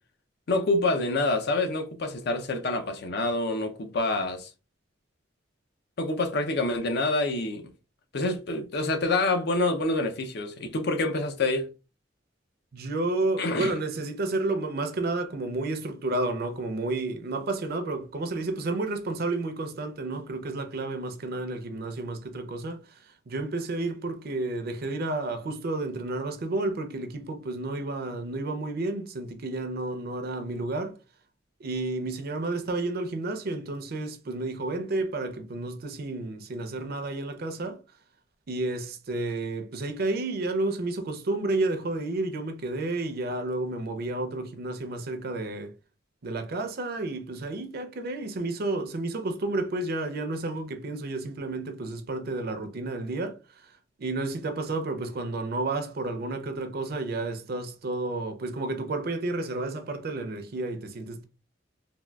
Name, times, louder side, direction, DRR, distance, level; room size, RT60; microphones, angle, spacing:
voice 1, 0.5-4.5 6.0-7.7 8.1-11.7 13.4-13.7, left 2 dB, 60° left, 0.5 m, -27 dB
voice 2, 12.7-30.9 31.6-37.8 38.5-45.7 46.2-53.7 54.0-61.2, right 2 dB, 55° right, 0.5 m, -31 dB
3.6 x 2.3 x 2.2 m
head